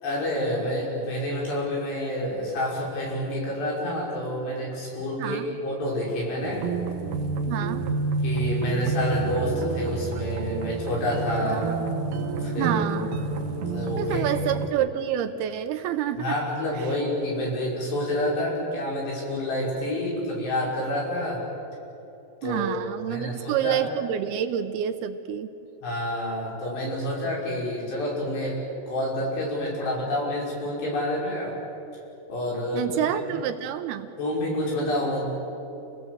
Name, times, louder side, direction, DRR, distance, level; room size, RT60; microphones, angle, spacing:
voice 1, 0.0-6.7 8.2-11.7 12.4-12.8 13.7-14.2 16.2-21.4 22.4-22.7 23.0-23.8 25.8-28.6 28.9-31.6 32.3-33.0 34.2-35.2, left 1 dB, 75° left, -3 dB, 7.7 m, -28 dB
voice 2, 5.2-5.6 7.5-7.9 11.5-11.6 12.6-13.1 14.0-16.4 22.4-25.5 32.7-34.1, right 10 dB, 75° right, 9 dB, 2.6 m, -28 dB
sound 1, 6.4-14.7, right 3 dB, 55° right, 2.5 m, -29 dB
29.0 x 19.0 x 8.1 m, 2.9 s
omnidirectional pair, 4.9 m